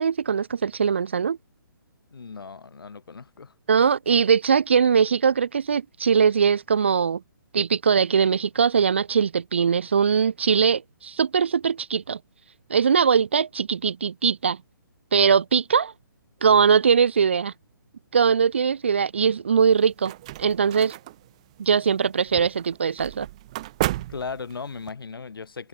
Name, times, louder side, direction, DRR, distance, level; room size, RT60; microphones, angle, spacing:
voice 1, 0.0-1.4 3.7-7.2 7.5-12.2 12.7-14.6 15.1-15.9 16.4-17.5 18.1-20.1 20.4-20.9 21.6-23.3, right 6 dB, 30° right, 0.4 m, -21 dB
voice 2, 2.1-3.5 24.1-25.7, left 5 dB, 80° left, 4.2 m, -37 dB
sound 1, 19.6-24.9, right 16 dB, 15° right, 0.8 m, -34 dB
hypercardioid pair, 175°, 12 cm